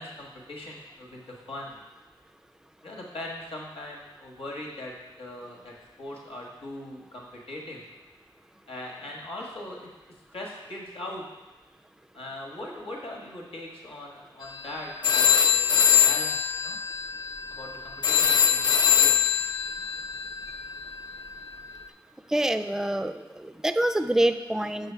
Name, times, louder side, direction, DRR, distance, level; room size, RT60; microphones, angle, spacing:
voice 1, 0.0-1.8 2.8-7.8 8.7-11.2 12.1-16.9 17.5-19.1, left 1 dB, 85° left, -2 dB, 1.5 m, -40 dB
sound 1, 14.4-14.7 15.0-21.7, left 8 dB, 55° left, 0.6 m, -23 dB
voice 2, 22.3-24.9, right 1 dB, 5° right, 10 dB, 0.4 m, -26 dB
6.7 x 5.5 x 4.6 m, 1.1 s
wide cardioid pair, 85°, 9 cm